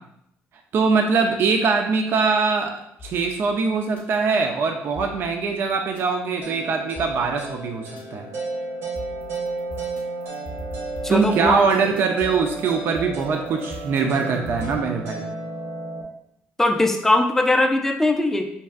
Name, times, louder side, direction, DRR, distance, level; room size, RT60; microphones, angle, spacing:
voice 1, 0.7-2.7 3.0-8.3 11.1-15.3, right 5 dB, 55° right, 3 dB, 0.4 m, -22 dB
sound 1, 3.0-4.0 5.0-6.0 7.0-8.0 9.0-14.8, left 2 dB, 35° left, 0.8 m, -40 dB
sound 2, 6.4-16.0, right 3 dB, 75° right, 1.1 m, -33 dB
voice 2, 11.0-11.6 16.6-18.5, left 2 dB, 10° left, 4 dB, 0.4 m, -20 dB
5.3 x 2.4 x 2.4 m, 0.74 s
cardioid pair, 135°, 5 cm